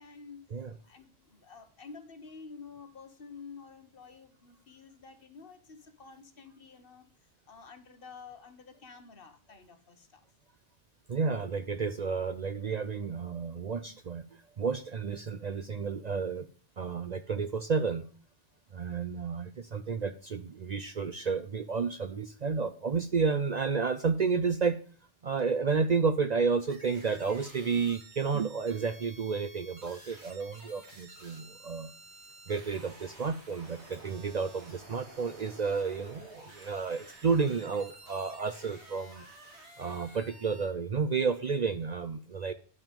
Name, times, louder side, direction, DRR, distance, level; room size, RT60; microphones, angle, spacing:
voice 1, 0.0-0.4 0.8-7.1 7.5-10.2, left 5 dB, 55° left, 9 dB, 1.4 m, -50 dB
voice 2, 11.1-14.2 14.6-16.5 16.8-18.1 18.7-24.8 25.2-31.9 32.5-39.3 39.8-42.5, right 5 dB, 50° right, 11 dB, 0.6 m, -31 dB
sound 1, 26.7-40.7, right 2 dB, 85° right, 2.9 m, -52 dB
10.5 x 5.9 x 5.2 m, 0.42 s
omnidirectional pair, 1.1 m